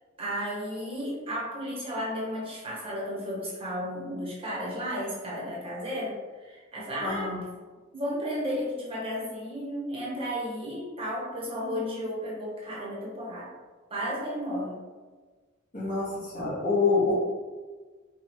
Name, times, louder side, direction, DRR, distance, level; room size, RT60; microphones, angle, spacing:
voice 1, 0.2-7.3 7.9-13.5 13.9-14.8, equal, 30° right, -5 dB, 1.0 m, -33 dB
voice 2, 7.0-7.4 15.7-17.1, left 4 dB, 40° left, -7 dB, 1.2 m, -26 dB
5.2 x 2.3 x 3.0 m, 1.4 s
head